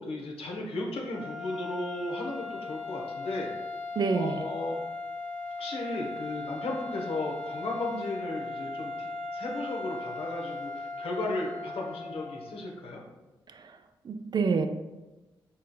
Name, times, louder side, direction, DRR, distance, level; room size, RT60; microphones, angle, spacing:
voice 1, 0.0-3.5 4.1-4.8 5.6-13.0, left 2 dB, 70° left, 0 dB, 0.9 m, -35 dB
sound 1, 1.0-12.6, left 3 dB, 5° right, 1.1 m, -38 dB
voice 2, 4.0-4.4 14.1-14.7, right 5 dB, 45° right, 8 dB, 0.4 m, -27 dB
4.3 x 3.7 x 2.2 m, 1.1 s
supercardioid pair, 45°, 10 cm